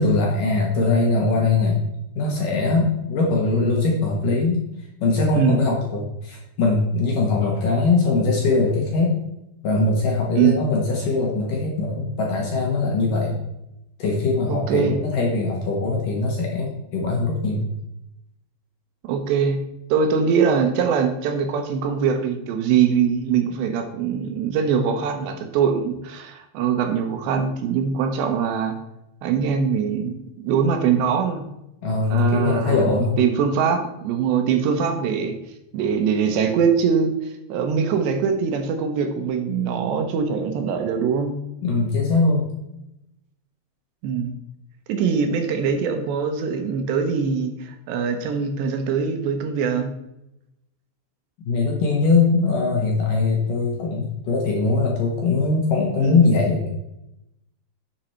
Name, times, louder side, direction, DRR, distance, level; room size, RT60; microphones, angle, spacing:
voice 1, 0.0-1.9 2.2-4.6 5.0-9.2 9.6-13.4 14.0-17.7 31.8-33.2 41.6-42.5 51.5-56.7, left 3 dB, 60° left, -1 dB, 2.4 m, -21 dB
voice 2, 14.5-15.0 19.0-19.6 19.9-28.8 29.2-31.4 32.1-35.4 35.7-41.3 44.0-44.4 44.9-49.9 56.0-56.2, right 6 dB, 75° right, 6 dB, 3.0 m, -22 dB
10.0 x 7.3 x 4.4 m, 0.87 s
omnidirectional pair, 5.3 m